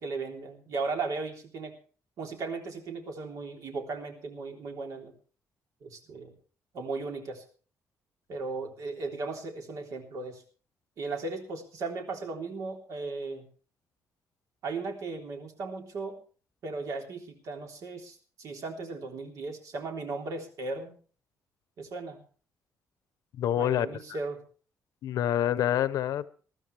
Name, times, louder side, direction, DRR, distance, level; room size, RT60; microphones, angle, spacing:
voice 1, 0.0-1.7 2.2-5.1 5.8-6.3 6.7-7.4 8.3-10.4 11.0-13.5 14.6-16.2 16.6-21.0 21.8-22.2 23.6-24.4, right 3 dB, 60° right, 3 dB, 3.6 m, -36 dB
voice 2, 23.4-23.9 25.0-26.3, left 11 dB, 75° left, 15 dB, 0.8 m, -26 dB
21.0 x 13.0 x 3.4 m, 0.40 s
cardioid pair, 150°, 6 cm